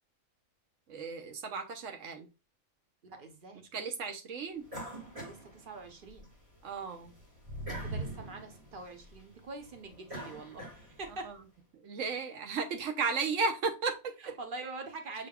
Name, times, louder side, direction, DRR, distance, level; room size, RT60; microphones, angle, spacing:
voice 1, 0.9-2.3 3.7-4.7 6.6-7.1 11.2-11.4 11.7-14.4, right 4 dB, 75° right, 1.1 m, -34 dB
voice 2, 3.0-3.7 5.2-6.3 7.7-11.3 14.2-15.3, right 3 dB, 45° right, 0.9 m, -44 dB
sound 1, 4.7-6.2 6.6-11.2, right 1 dB, 25° right, 1.8 m, -43 dB
5.7 x 3.4 x 2.2 m
omnidirectional pair, 1.3 m